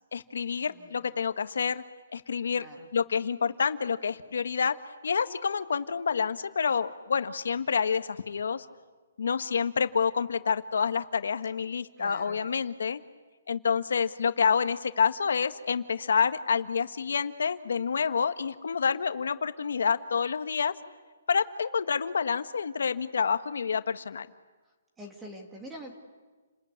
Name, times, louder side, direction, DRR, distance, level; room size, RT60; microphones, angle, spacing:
voice 1, 0.1-1.8 2.1-2.6 2.9-4.7 5.0-8.6 9.2-13.0 13.5-20.7 21.3-24.3, left 6 dB, 70° left, 10 dB, 1.5 m, -28 dB
voice 2, 0.7-1.1 2.6-2.9 12.0-12.4 25.0-25.9, equal, 5° right, 2 dB, 2.0 m, -45 dB
30.0 x 21.0 x 9.6 m, 1.3 s
hypercardioid pair, 180°, 0 cm